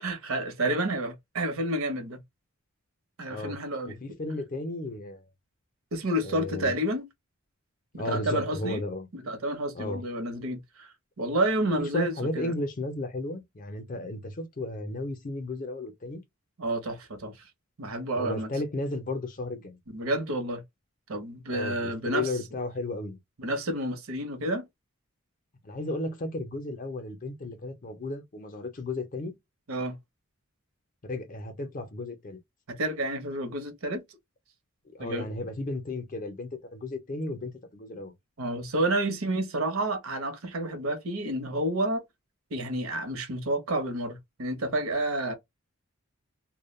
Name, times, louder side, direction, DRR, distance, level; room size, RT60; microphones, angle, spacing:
voice 1, 0.0-2.2 3.2-4.0 5.9-7.1 7.9-8.8 9.1-12.5 16.6-17.4 17.8-18.5 19.9-20.6 21.1-22.3 23.4-24.7 29.7-29.9 32.8-34.0 35.0-35.3 38.4-42.0 42.5-45.3, right 1 dB, 70° right, 0.7 m, -30 dB
voice 2, 3.9-5.2 6.2-6.7 7.9-9.1 9.7-10.0 11.8-16.2 18.1-19.8 21.5-23.2 25.6-29.3 31.0-32.4 34.9-38.1, left 2 dB, 35° left, 0.5 m, -34 dB
2.2 x 2.1 x 3.1 m
head